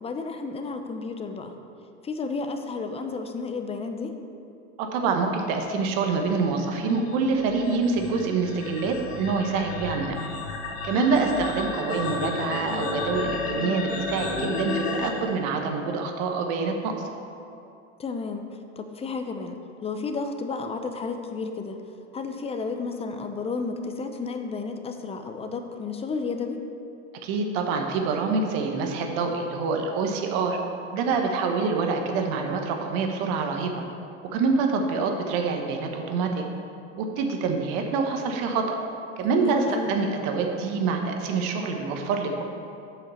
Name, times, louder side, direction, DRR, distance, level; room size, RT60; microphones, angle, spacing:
voice 1, 0.0-1.5 2.0-4.2 10.9-11.2 18.0-18.5 18.8-19.6 19.8-21.8 22.1-26.6 39.4-39.9, left 4 dB, 15° left, 6 dB, 0.7 m, -32 dB
voice 2, 4.8-10.1 10.8-16.9 27.2-30.6 30.9-33.8 34.3-36.4 37.0-38.7 39.2-42.4, right 4 dB, 55° right, 3 dB, 1.4 m, -26 dB
sound 1, 5.8-15.1, left 4 dB, 65° left, 2.1 m, -32 dB
7.7 x 5.6 x 7.0 m, 2.6 s
hypercardioid pair, 110°, 35 cm